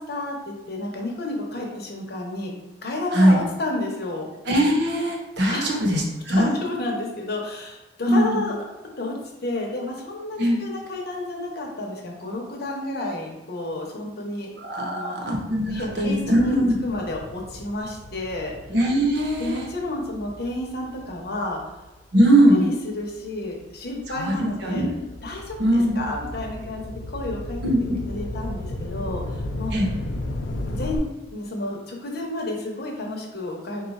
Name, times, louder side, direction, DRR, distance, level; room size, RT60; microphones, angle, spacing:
voice 1, 0.0-2.5 2.8-4.3 5.5-5.8 6.3-8.5 9.0-9.2 9.4-14.5 14.7-15.2 15.7-16.6 16.8-18.5 19.4-21.6 22.5-24.8 25.2-26.8 27.1-27.6 28.0-29.7 30.7-31.0 31.3-33.9, left 2 dB, 55° left, 0 dB, 0.9 m, -31 dB
voice 2, 4.4-6.5 8.1-8.4 10.4-10.6 14.6-16.7 18.7-19.6 22.1-22.6 24.1-24.9 25.6-26.0 27.6-28.0 29.7-29.9, right 1 dB, 65° right, 0 dB, 0.9 m, -20 dB
sound 1, 15.7-22.4 23.0-31.0, left 1 dB, 70° left, 0.5 m, -35 dB
4.0 x 2.3 x 4.1 m, 1.0 s
head